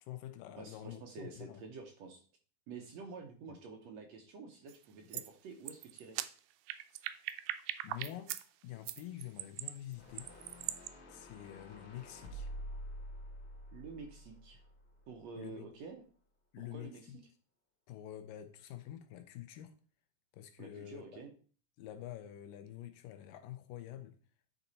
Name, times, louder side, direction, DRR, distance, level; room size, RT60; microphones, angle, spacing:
voice 1, 0.0-1.6 3.5-3.6 5.1-5.3 7.8-8.3 8.6-10.3 11.1-12.5 15.4-15.7 16.5-17.2 17.9-19.7 20.3-21.2 21.8-24.2, left 12 dB, 80° left, 2.3 m, -47 dB
voice 2, 0.6-2.2 2.7-6.2 13.7-14.6 15.1-16.0 16.6-17.1 20.6-21.3, right 4 dB, 65° right, 1.8 m, -49 dB
sound 1, 4.7-4.9 5.1-5.3 5.7-8.4 8.9-10.9, right 14 dB, 90° right, 2.3 m, -40 dB
sound 2, 9.9-15.2, equal, 45° left, 2.0 m, -48 dB
10.0 x 4.1 x 4.1 m
omnidirectional pair, 4.0 m